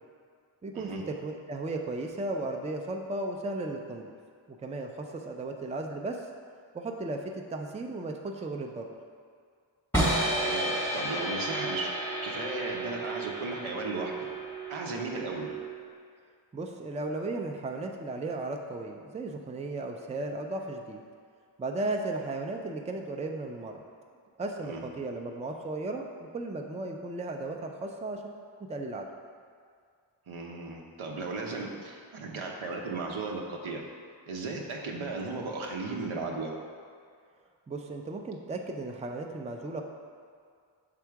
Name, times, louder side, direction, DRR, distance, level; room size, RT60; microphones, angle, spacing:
voice 1, 0.6-4.1 4.5-6.3 6.7-8.9 16.5-21.0 21.6-23.8 24.4-28.3 28.7-29.1 37.7-39.8, right 2 dB, 15° right, 2 dB, 0.4 m, -35 dB
sound 1, 9.9-15.9, right 1 dB, 5° left, 1.0 m, -32 dB
voice 2, 10.4-11.9 12.2-14.1 14.7-15.6 24.6-24.8 30.3-33.8 34.3-36.5, right 3 dB, 80° right, 0 dB, 0.9 m, -36 dB
6.0 x 3.6 x 4.6 m, 2.1 s
wide cardioid pair, 85°, 48 cm